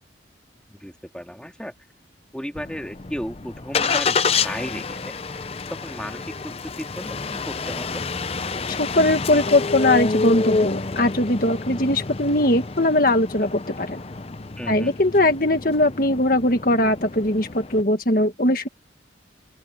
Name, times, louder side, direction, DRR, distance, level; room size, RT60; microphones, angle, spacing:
voice 1, 0.7-1.7 2.3-5.2 5.7-8.0 14.6-15.0, equal, 5° left, 2.5 m, -35 dB
Engine starting, 2.6-17.8, left 4 dB, 30° left, 0.6 m, -28 dB
voice 2, 8.7-14.0 14.7-18.7, left 1 dB, 50° left, 1.7 m, -20 dB
open air
head